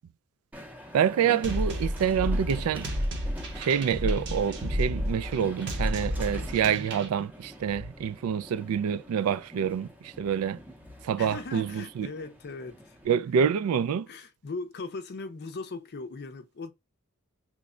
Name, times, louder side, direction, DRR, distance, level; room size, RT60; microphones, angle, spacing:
Train, 0.5-13.1, equal, 5° right, 0.6 m, -46 dB
voice 1, 0.9-2.9 3.6-10.6 11.0-12.1 13.1-14.1, right 8 dB, 70° right, 0.3 m, -27 dB
sound 1, 1.4-7.1, equal, 55° right, 0.7 m, -31 dB
voice 2, 11.2-13.0 14.1-16.7, left 3 dB, 50° left, 0.5 m, -39 dB
3.1 x 2.2 x 3.6 m
head